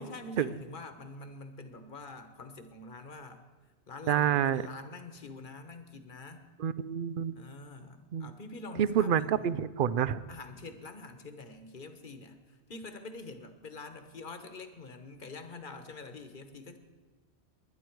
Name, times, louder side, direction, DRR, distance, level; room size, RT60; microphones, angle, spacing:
voice 1, 0.0-3.4 3.9-6.4 7.3-9.6 10.3-16.8, left 3 dB, 50° left, 8 dB, 1.3 m, -46 dB
voice 2, 4.1-4.6 6.6-7.3 8.1-8.3 8.8-10.2, right 9 dB, 60° right, 17 dB, 0.7 m, -28 dB
21.0 x 10.5 x 4.7 m, 1.4 s
omnidirectional pair, 1.1 m